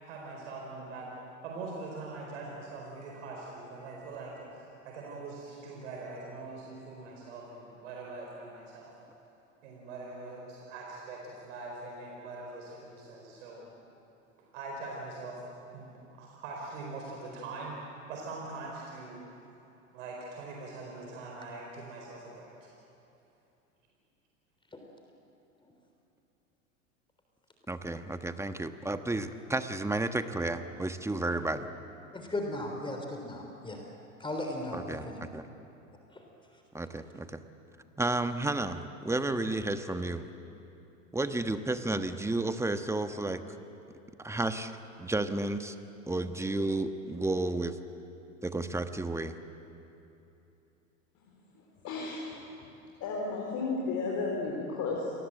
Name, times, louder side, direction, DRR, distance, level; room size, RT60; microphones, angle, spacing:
voice 1, 0.0-1.1 1.4-8.9 9.6-13.7 14.5-15.4 15.7-15.9 16.2-17.8 18.1-19.2 19.9-22.7, right 3 dB, 70° right, -1 dB, 4.6 m, -42 dB
voice 2, 27.7-31.7 34.7-35.5 36.7-37.4 38.0-40.3 41.1-43.4 44.2-44.7 45.0-45.7 46.1-47.8 48.4-49.4, right 2 dB, 5° right, 9 dB, 1.3 m, -32 dB
voice 3, 32.1-33.8 34.2-35.2 36.1-36.2, left 1 dB, 10° left, 2 dB, 3.6 m, -36 dB
voice 4, 51.2-52.3 53.0-55.1, left 3 dB, 50° left, -2 dB, 4.5 m, -34 dB
27.5 x 20.0 x 7.9 m, 2.9 s
hypercardioid pair, 85°, 39 cm